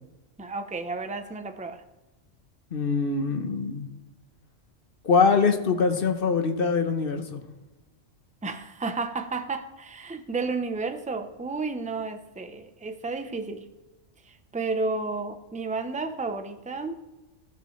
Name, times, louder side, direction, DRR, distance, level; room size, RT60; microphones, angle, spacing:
voice 1, 0.4-1.8 8.4-13.6 14.3-16.9, right 3 dB, 10° right, 7 dB, 0.5 m, -32 dB
voice 2, 2.7-3.9 5.0-7.5, left 5 dB, 50° left, 6 dB, 1.1 m, -23 dB
16.0 x 7.6 x 3.2 m, 1.1 s
omnidirectional pair, 1.3 m